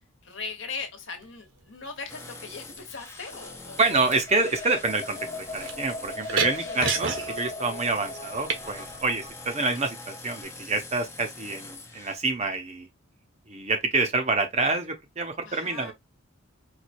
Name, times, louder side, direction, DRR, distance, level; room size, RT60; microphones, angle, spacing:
voice 1, 0.2-4.0 6.6-7.0 9.5-9.8 15.4-15.9, left 4 dB, 60° left, 1.1 m, -39 dB
sound 1, 1.2-1.6 2.5-3.0 3.3-9.5, right 5 dB, 60° right, 0.8 m, -34 dB
sound 2, 2.1-12.1, left 3 dB, 10° left, 0.5 m, -44 dB
voice 2, 3.8-12.9 13.5-15.9, right 3 dB, 30° right, 0.7 m, -27 dB
sound 3, 4.1-10.4, left 2 dB, 30° left, 1.3 m, -39 dB
4.4 x 2.4 x 2.6 m
head